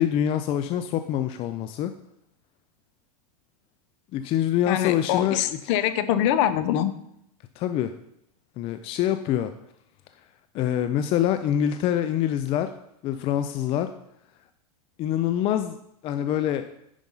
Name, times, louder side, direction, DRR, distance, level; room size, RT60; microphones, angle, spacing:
voice 1, 0.0-1.9 4.1-5.6 7.6-7.9 8.6-9.5 10.5-12.7 13.0-13.9 15.0-15.8 16.0-16.6, left 10 dB, 30° left, 9 dB, 0.4 m, -25 dB
voice 2, 4.7-6.9, left 11 dB, 50° left, 13 dB, 0.8 m, -24 dB
9.8 x 5.3 x 5.5 m, 0.76 s
supercardioid pair, 145°, 20 cm